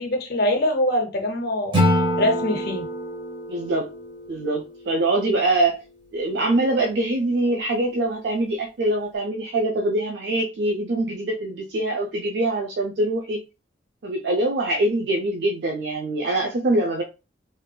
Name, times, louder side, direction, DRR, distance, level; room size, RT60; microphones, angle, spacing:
voice 1, 0.0-1.8 2.2-2.9, left 1 dB, 55° left, 3 dB, 0.6 m, -23 dB
Acoustic guitar / Strum, 1.7-4.9, equal, 25° right, 1.0 m, -25 dB
voice 2, 3.5-3.9 4.3-5.8 6.1-13.4 14.0-17.0, right 2 dB, 60° right, 1 dB, 0.4 m, -23 dB
3.6 x 2.6 x 2.2 m, 0.30 s
head